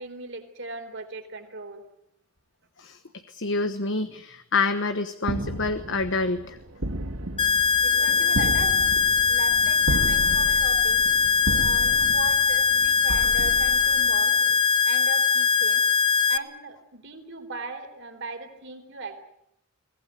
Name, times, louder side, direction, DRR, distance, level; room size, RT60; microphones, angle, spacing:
voice 1, 0.0-1.8 7.8-8.8 9.3-11.1 11.6-14.3 14.8-15.9 16.3-19.2, right 3 dB, 55° right, 6 dB, 4.0 m, -38 dB
voice 2, 3.3-6.6, left 3 dB, 55° left, 9 dB, 1.2 m, -27 dB
sound 1, 5.2-14.5, right 1 dB, 85° right, 2.2 m, -33 dB
sound 2, 7.4-16.4, left 6 dB, 25° left, 0.9 m, -21 dB
24.5 x 18.0 x 9.2 m, 0.77 s
head